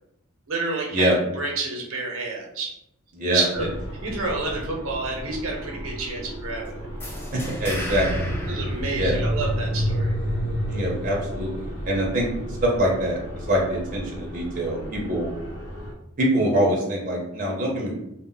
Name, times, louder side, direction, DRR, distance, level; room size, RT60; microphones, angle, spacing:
voice 1, 0.5-1.1 1.3-2.7 3.3-3.7 4.0-6.9 8.5-10.1, right 3 dB, 85° right, -1 dB, 0.7 m, -29 dB
sound 1, 3.5-15.9, equal, 75° left, 0.6 m, -31 dB
sound 2, 7.0-9.7, left 1 dB, 10° left, 0.3 m, -34 dB
voice 2, 7.3-8.3 8.9-9.2 10.7-12.3 12.6-15.3 16.2-17.9, right 1 dB, 40° right, -2 dB, 0.6 m, -24 dB
2.1 x 2.0 x 3.7 m, 0.81 s
head